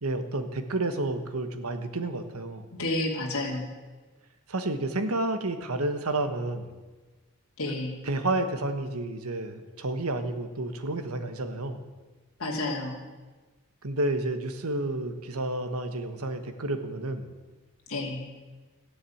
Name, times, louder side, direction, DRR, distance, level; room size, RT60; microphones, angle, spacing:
voice 1, 0.0-2.6 4.5-6.7 8.0-11.8 13.8-17.3, right 2 dB, 85° right, 8 dB, 1.4 m, -30 dB
voice 2, 2.7-3.6 7.6-8.0 12.4-12.9 17.9-18.3, left 2 dB, 80° left, -1 dB, 2.6 m, -30 dB
13.5 x 10.0 x 8.6 m, 1.3 s
head